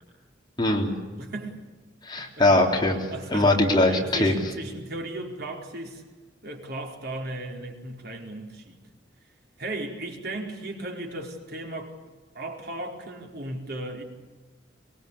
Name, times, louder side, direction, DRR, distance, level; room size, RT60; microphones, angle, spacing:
voice 1, 0.6-0.9 2.0-3.0 3.3-4.4, left 2 dB, 25° left, 3.8 m, -21 dB
voice 2, 1.2-1.6 2.2-2.4 3.1-3.5 3.9-6.0 6.4-8.8 9.6-11.9 12.3-14.0, right 1 dB, 60° right, 4.5 m, -36 dB
24.0 x 22.5 x 8.6 m
head